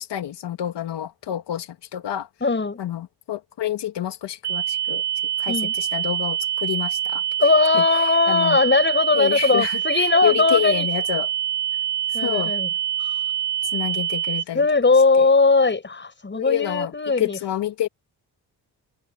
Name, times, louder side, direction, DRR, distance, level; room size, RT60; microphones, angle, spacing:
voice 1, 0.0-2.3 2.8-5.0 5.4-7.2 7.7-7.8 8.3-8.6 9.1-11.3 12.1-12.5 13.7-14.6 15.2-15.3 16.3-17.9, left 11 dB, 80° left, 2.8 m, -28 dB
voice 2, 2.4-2.8 5.5-5.7 7.4-10.9 12.1-12.7 13.0-13.1 14.5-17.4, left 3 dB, 25° left, 7.2 m, -19 dB
sound 1, 4.4-14.4, right 11 dB, 90° right, 0.9 m, -25 dB
cardioid pair, 90°, 41 cm